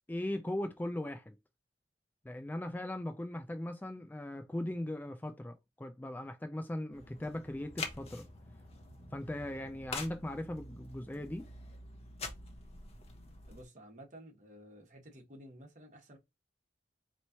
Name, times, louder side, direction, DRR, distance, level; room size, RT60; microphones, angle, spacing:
voice 1, 0.1-1.4 2.2-8.3 9.1-11.5, left 1 dB, 10° left, 0.3 m, -39 dB
sound 1, 6.9-13.6, left 3 dB, 35° left, 1.0 m, -46 dB
voice 2, 13.5-16.2, equal, 45° right, 1.4 m, -53 dB
4.3 x 3.1 x 2.7 m
head